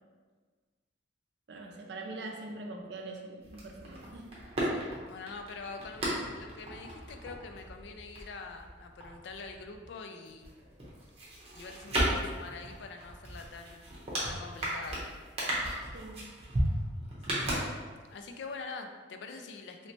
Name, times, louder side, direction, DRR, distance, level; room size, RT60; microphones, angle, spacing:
voice 1, 1.5-4.3 15.8-16.4, right 2 dB, 60° right, 2 dB, 0.4 m, -43 dB
sound 1, 3.4-9.9 10.2-18.2 18.5-18.6, right 1 dB, 35° right, 0.8 m, -36 dB
voice 2, 4.7-10.5 11.5-13.9 14.3-15.0 17.3-17.6 18.1-19.9, left 4 dB, 65° left, 5 dB, 0.3 m, -45 dB
3.1 x 3.0 x 2.8 m, 1.5 s
head